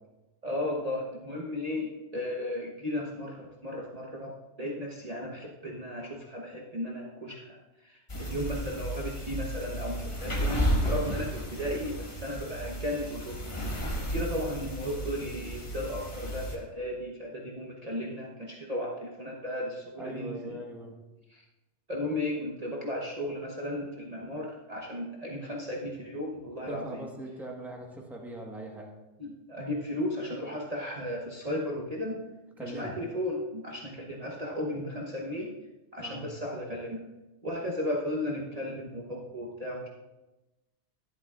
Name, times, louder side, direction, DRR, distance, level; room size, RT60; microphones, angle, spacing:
voice 1, 0.4-4.3 4.6-7.6 7.8-13.4 14.1-20.5 21.3-21.4 21.9-27.0 29.2-32.1 32.6-35.5 35.9-37.0 37.4-39.9, left 1 dB, 35° right, -2 dB, 1.1 m, -35 dB
sound 1, 8.1-16.6, equal, 25° left, 1.4 m, -33 dB
voice 2, 20.0-20.9 26.7-28.9 32.6-32.9 36.0-36.3, right 1 dB, ahead, 0 dB, 1.2 m, -40 dB
12.0 x 11.0 x 2.4 m, 1.0 s
omnidirectional pair, 1.3 m